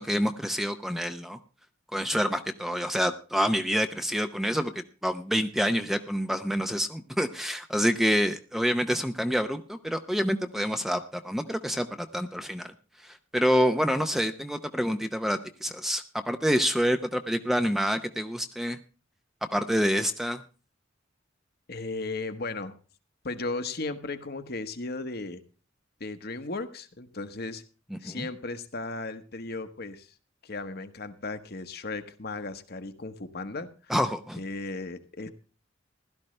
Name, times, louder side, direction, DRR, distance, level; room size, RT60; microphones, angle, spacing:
voice 1, 0.0-1.4 1.9-4.7 5.0-12.7 13.0-18.8 19.5-20.4 27.9-28.3 33.9-34.4, equal, ahead, 8 dB, 0.6 m, -27 dB
voice 2, 21.7-22.8 23.2-25.4 26.0-27.6 28.0-30.1 30.4-33.9 34.4-35.3, left 3 dB, 55° left, 9 dB, 1.2 m, -36 dB
16.0 x 12.5 x 3.2 m, 0.36 s
head